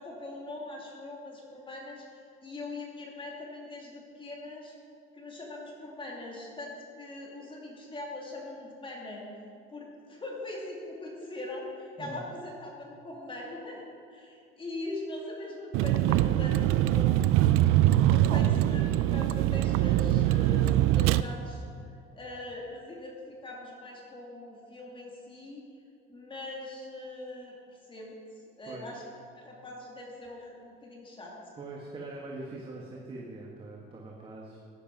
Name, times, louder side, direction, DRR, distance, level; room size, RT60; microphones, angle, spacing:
voice 1, 0.0-4.7 5.1-9.3 9.7-13.8 14.1-21.6 22.1-25.6 26.1-27.5 27.9-28.1 28.6-29.0 29.3-31.3, left 2 dB, 25° left, -2 dB, 2.6 m, -41 dB
Vehicle, 15.7-21.2, right 13 dB, 85° right, 0.5 m, -23 dB
voice 2, 31.6-34.6, right 2 dB, 25° right, -2 dB, 1.6 m, -42 dB
14.5 x 10.5 x 5.4 m, 2.5 s
cardioid pair, 135°, 21 cm